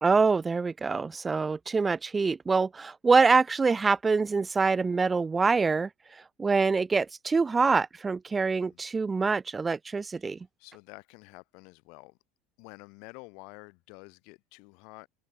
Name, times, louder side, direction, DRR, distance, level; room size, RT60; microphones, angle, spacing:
voice 1, 0.0-5.9 6.4-10.4, right 4 dB, 20° right, 0.5 m, -25 dB
voice 2, 10.1-12.2 12.6-15.1, left 32 dB, 70° left, 2.2 m, -50 dB
open air
supercardioid pair, 95°, 0 cm